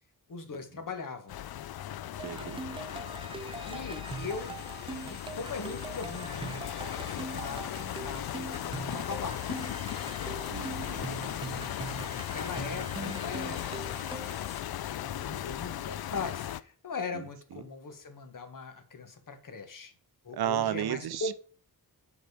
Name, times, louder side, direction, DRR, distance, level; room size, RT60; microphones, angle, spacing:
voice 1, 0.3-1.4 2.3-2.5 3.6-4.6 5.1-9.5 11.1-11.4 12.1-14.4 15.0-19.9 20.2-21.3, left 4 dB, 55° left, 1.6 m, -40 dB
sound 1, 1.3-16.6, left 12 dB, 75° left, 0.5 m, -37 dB
sound 2, 2.2-14.5, right 4 dB, 15° right, 0.3 m, -42 dB
voice 2, 2.2-2.6 10.5-11.1 17.1-17.2 17.5-17.6 20.3-21.3, right 11 dB, 80° right, 0.7 m, -33 dB
sound 3, 4.0-14.6, left 3 dB, 25° left, 1.2 m, -52 dB
7.3 x 5.3 x 4.9 m
wide cardioid pair, 105°, 38 cm